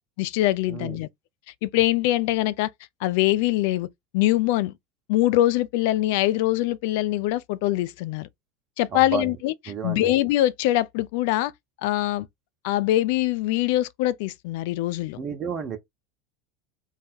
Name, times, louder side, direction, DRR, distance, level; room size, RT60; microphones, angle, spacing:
voice 1, 0.2-1.1 1.6-2.7 3.0-3.9 4.1-4.7 5.1-8.3 8.8-9.5 9.8-11.5 11.8-12.3 12.6-15.2, left 15 dB, 55° left, 0.3 m, -23 dB
voice 2, 8.9-9.3 9.7-10.1 15.2-15.8, right 6 dB, 35° right, 1.1 m, -31 dB
4.0 x 2.2 x 4.3 m
figure-of-eight pair, 75°, 0 cm